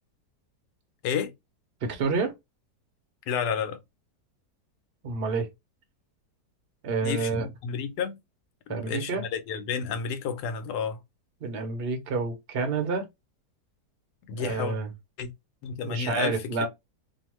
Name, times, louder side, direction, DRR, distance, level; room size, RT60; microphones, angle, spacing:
voice 1, 1.8-2.3 5.0-5.5 6.8-7.5 8.7-9.2 11.4-13.0 14.3-14.9 15.8-16.7, right 4 dB, 55° right, 0.7 m, -29 dB
voice 2, 3.3-3.8 7.0-8.2 8.7-11.0 14.3-14.7 15.2-15.3 15.6-16.7, left 7 dB, 90° left, 1.2 m, -31 dB
2.9 x 2.1 x 2.9 m
omnidirectional pair, 1.7 m